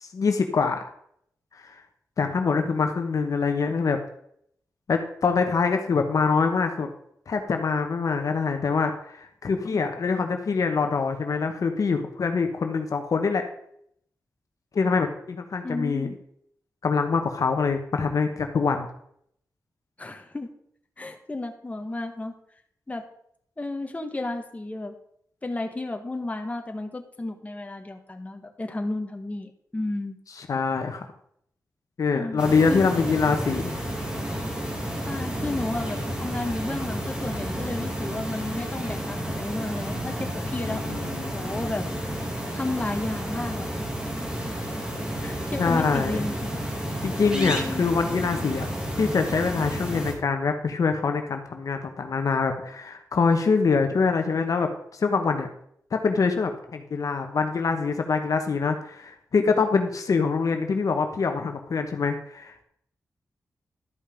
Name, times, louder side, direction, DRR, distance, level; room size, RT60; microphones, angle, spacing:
voice 1, 0.0-0.8 1.5-1.7 2.2-4.0 4.9-6.9 7.3-13.4 14.7-16.1 16.8-18.9 30.4-31.1 32.0-33.8 40.6-41.3 45.6-46.2 47.0-48.7 49.0-55.5 55.9-62.6, left 5 dB, 65° left, 6 dB, 1.1 m, -24 dB
voice 2, 15.6-16.1 20.0-20.5 21.0-22.3 22.9-23.1 23.6-24.9 25.4-30.2 32.1-32.4 32.7-32.9 35.1-41.8 42.5-43.7 44.2-44.3 45.2-46.6 47.3-47.8, left 2 dB, 20° left, 5 dB, 1.3 m, -32 dB
sound 1, 32.4-50.1, equal, 15° right, 2.5 m, -31 dB
12.0 x 5.5 x 5.1 m, 0.69 s
cardioid pair, 80°, 6 cm